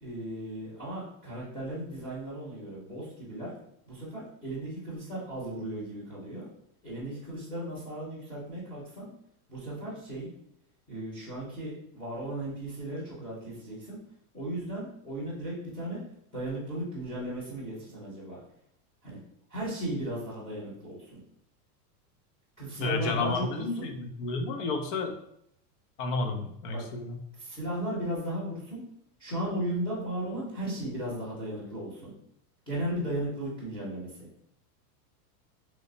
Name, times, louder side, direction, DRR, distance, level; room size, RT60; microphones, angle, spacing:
voice 1, 0.0-3.5 3.9-6.5 6.8-9.1 9.5-10.3 10.9-14.0 14.3-16.0 16.3-18.4 19.0-19.2 19.5-21.2 22.6-23.9 26.7-26.8 27.4-28.8 29.2-32.1 32.7-34.3, right 1 dB, 10° left, -8 dB, 0.8 m, -36 dB
voice 2, 22.8-25.1 26.0-27.2, left 3 dB, 55° left, 4 dB, 0.6 m, -31 dB
3.2 x 2.0 x 3.8 m, 0.73 s
supercardioid pair, 165°, 46 cm